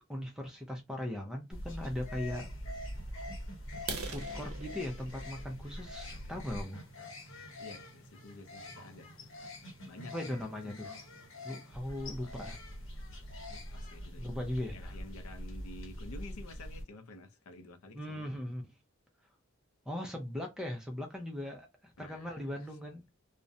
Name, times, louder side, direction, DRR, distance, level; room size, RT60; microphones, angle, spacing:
voice 1, 0.1-2.5 4.0-6.8 10.1-10.9 11.4-12.6 14.2-14.9 17.9-18.6 19.9-23.1, left 1 dB, 5° right, 0.4 m, -39 dB
sound 1, 1.5-16.8, left 1 dB, 65° left, 0.8 m, -44 dB
sound 2, 3.8-7.5 8.1-8.3 8.7-8.8 9.2-9.4 9.7-9.8 10.3-10.4 10.6-11.1, right 4 dB, 80° right, 0.6 m, -45 dB
voice 2, 7.6-9.3 9.9-11.1 12.2-12.5 12.9-13.0 13.5-18.3 22.0-22.7, left 2 dB, 85° left, 0.5 m, -51 dB
2.4 x 2.1 x 2.6 m
head